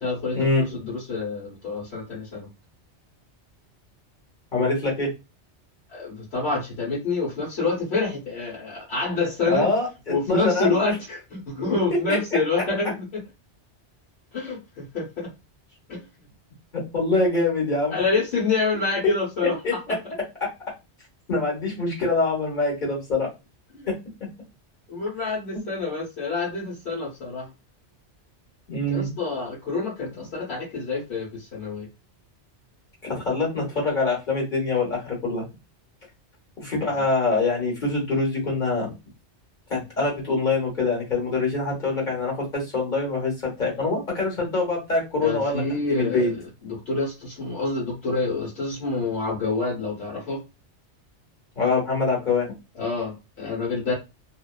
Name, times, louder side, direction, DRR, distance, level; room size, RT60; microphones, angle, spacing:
voice 1, 0.0-0.5 0.8-2.5 5.9-9.7 10.1-13.2 14.3-15.3 15.9-16.0 17.9-20.0 23.7-23.9 24.9-27.5 28.9-31.9 45.2-46.3 46.6-50.4 52.8-53.9, left 3 dB, 65° left, -8 dB, 1.2 m, -27 dB
voice 2, 4.5-5.1 9.5-10.8 12.1-12.2 16.9-18.0 19.6-19.9 21.3-23.3 23.9-24.0 28.7-29.1 33.1-35.4 36.6-38.9 39.7-45.6 45.9-46.3 51.6-52.5, left 3 dB, 45° left, -3 dB, 1.2 m, -24 dB
2.6 x 2.3 x 2.2 m, 0.26 s
omnidirectional pair, 1.2 m